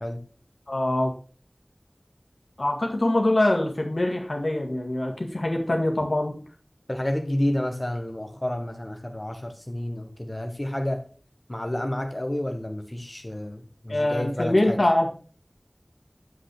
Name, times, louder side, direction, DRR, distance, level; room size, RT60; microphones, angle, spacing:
voice 1, 0.7-1.1 2.6-6.3 13.9-15.1, left 1 dB, 85° left, 1 dB, 2.0 m, -24 dB
voice 2, 6.9-11.0 11.5-14.8, left 1 dB, 30° left, 5 dB, 1.2 m, -30 dB
8.2 x 8.0 x 3.2 m, 0.40 s
wide cardioid pair, 45°, 0 cm